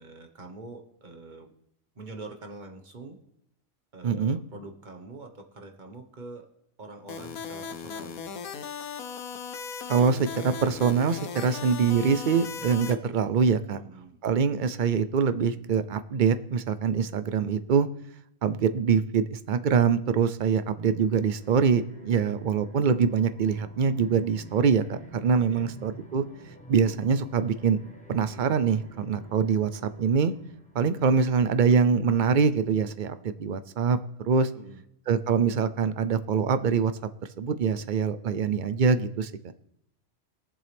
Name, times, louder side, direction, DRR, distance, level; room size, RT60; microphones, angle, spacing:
voice 1, 0.0-1.5 1.9-3.2 3.9-6.5 6.8-8.4 13.7-14.2 25.5-25.7 34.5-34.8, right 2 dB, 35° right, 4 dB, 1.3 m, -44 dB
voice 2, 4.0-4.4 9.9-13.8 14.2-17.9 18.4-26.2 26.7-27.8 28.1-30.3 30.7-34.0 34.2-34.5 35.1-36.9 37.4-39.3, right 6 dB, 55° right, 12 dB, 0.5 m, -24 dB
sound 1, 7.1-12.9, left 6 dB, 80° left, 1.4 m, -37 dB
sound 2, 20.8-31.3, right 1 dB, 5° left, 1.3 m, -49 dB
22.0 x 7.4 x 3.4 m, 0.78 s
omnidirectional pair, 1.5 m